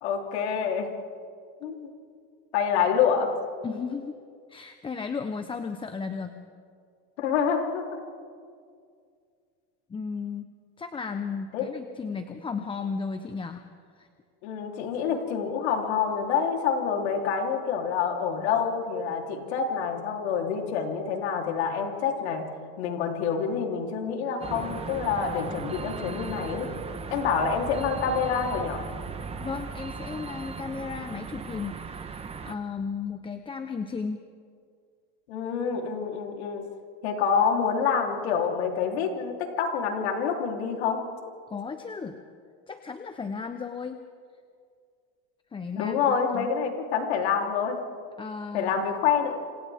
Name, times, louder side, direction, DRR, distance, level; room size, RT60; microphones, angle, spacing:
voice 1, 0.0-0.9 1.6-1.9 2.5-3.3 7.2-7.8 11.5-11.7 14.4-22.5 22.8-26.7 27.1-28.8 35.3-36.6 37.0-41.0 45.7-47.8 48.5-49.3, left 6 dB, 85° left, 1 dB, 3.7 m, -27 dB
voice 2, 3.6-4.2 4.5-6.3 9.9-10.5 10.8-13.6 13.9-14.1 29.4-34.2 41.5-42.2 42.7-44.0 45.5-46.5 48.2-48.7, left 5 dB, 15° left, 7 dB, 0.9 m, -35 dB
sound 1, 24.4-32.6, right 5 dB, 20° right, 1.3 m, -37 dB
28.5 x 27.0 x 3.7 m, 2.2 s
supercardioid pair, 125°, 32 cm